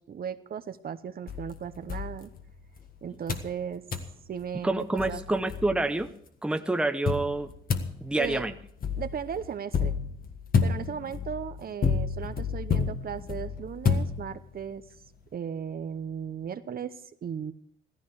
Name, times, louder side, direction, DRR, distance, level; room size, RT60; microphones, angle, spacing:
voice 1, 0.0-2.3 3.0-3.9 4.3-5.4 8.2-8.5 9.0-10.0 10.6-14.8 15.3-17.5, right 8 dB, 50° right, 11 dB, 0.9 m, -36 dB
sound 1, 1.3-2.8 3.3-3.6 3.9-4.2 4.7-4.8 5.0-6.1 7.1-14.6, left 5 dB, 45° left, 1.6 m, -30 dB
voice 2, 4.6-6.1 6.4-7.5 8.0-8.5, right 2 dB, 5° right, 8 dB, 0.8 m, -27 dB
15.0 x 14.5 x 4.8 m, 0.66 s
cardioid pair, 90°, 20 cm